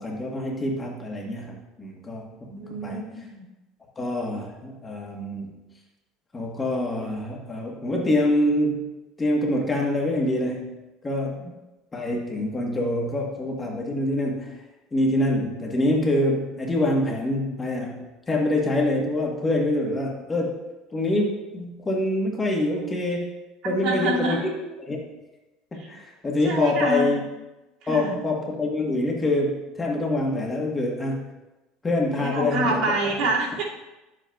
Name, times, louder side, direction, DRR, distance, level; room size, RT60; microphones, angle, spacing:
voice 1, 0.0-2.3 2.8-3.1 4.0-5.6 6.3-8.9 9.2-10.7 11.0-11.4 11.9-14.6 14.9-20.6 20.9-23.3 23.6-24.5 24.8-25.0 25.7-27.2 27.9-31.3 31.8-32.8, left 1 dB, 15° left, 0 dB, 1.2 m, -25 dB
voice 2, 2.5-3.4 11.4-11.5 23.6-24.4 25.8-25.9 26.4-27.2 27.8-28.2 32.2-33.6, right 2 dB, 60° right, -4 dB, 2.3 m, -27 dB
11.5 x 7.6 x 2.3 m, 1.0 s
cardioid pair, 145°, 0 cm